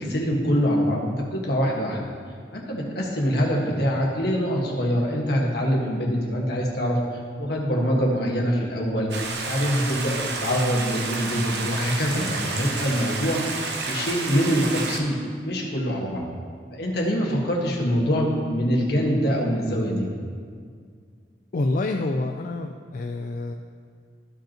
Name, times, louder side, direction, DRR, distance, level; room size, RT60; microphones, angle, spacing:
voice 1, 0.0-2.0 2.5-9.1 9.4-16.3 16.7-20.1, equal, 65° left, -2 dB, 1.5 m, -24 dB
Stream, 9.1-15.0, right 3 dB, 70° right, 0.9 m, -30 dB
voice 2, 21.5-23.5, left 2 dB, 50° left, 4 dB, 0.4 m, -27 dB
14.0 x 5.2 x 2.9 m, 2.1 s
head